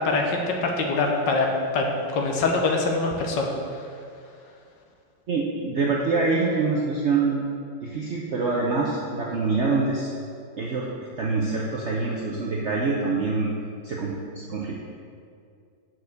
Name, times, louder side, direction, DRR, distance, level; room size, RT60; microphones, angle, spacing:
voice 1, 0.0-1.5 1.7-3.5, left 3 dB, 75° left, 1 dB, 1.5 m, -24 dB
voice 2, 5.3-7.5 7.8-10.1 10.6-10.9 11.2-13.5 13.8-14.8, right 4 dB, 60° right, -3 dB, 0.7 m, -25 dB
5.9 x 4.9 x 6.4 m, 2.3 s
omnidirectional pair, 2.0 m